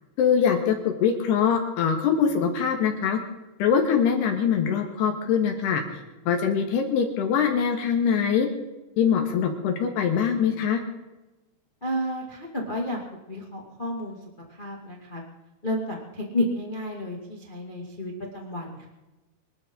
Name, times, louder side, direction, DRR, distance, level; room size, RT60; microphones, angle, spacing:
voice 1, 0.2-3.2 3.6-5.8 6.3-8.5 9.0-10.8, left 7 dB, 75° left, 4 dB, 3.5 m, -23 dB
voice 2, 11.8-13.0 13.3-14.2 14.6-15.2 15.6-18.9, left 1 dB, 20° left, 0 dB, 1.3 m, -31 dB
25.0 x 12.5 x 3.9 m, 1.1 s
omnidirectional pair, 5.0 m